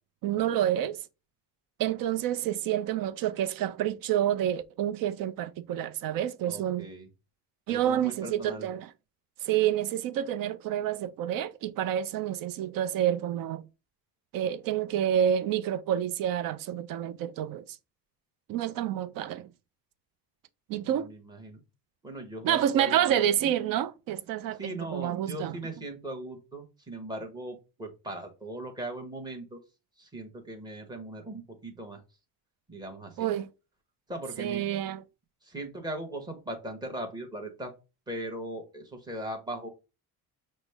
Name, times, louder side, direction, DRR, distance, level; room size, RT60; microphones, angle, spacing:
voice 1, 0.2-1.0 1.8-6.9 7.7-8.9 9.4-13.6 14.3-17.6 18.5-19.5 20.7-21.1 22.4-25.6 33.2-33.5 34.4-35.0, right 10 dB, 60° right, 0.6 m, -28 dB
voice 2, 6.4-7.1 7.7-8.7 20.8-21.6 22.0-23.3 24.6-29.6 30.0-32.0 32.7-33.3 34.1-34.6 35.4-37.7 38.1-39.7, right 1 dB, 10° right, 1.1 m, -39 dB
6.1 x 2.2 x 3.4 m
cardioid pair, 145°, 39 cm